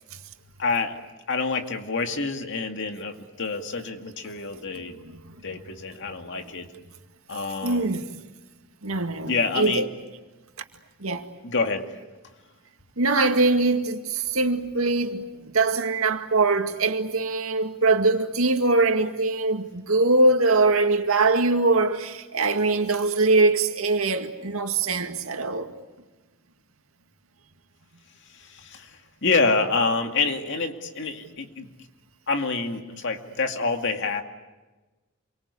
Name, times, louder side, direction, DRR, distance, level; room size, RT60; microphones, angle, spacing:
voice 1, 0.6-1.0 1.3-5.0 5.4-6.7 7.3-8.0 9.3-9.8 11.4-11.9 28.3-31.7 32.3-34.2, left 4 dB, 60° left, 2.3 m, -27 dB
voice 2, 4.7-5.6 6.1-6.4 7.6-8.2 8.8-9.9 11.0-11.3 13.0-25.7, right 3 dB, 90° right, 2.1 m, -23 dB
28.0 x 24.0 x 8.4 m
head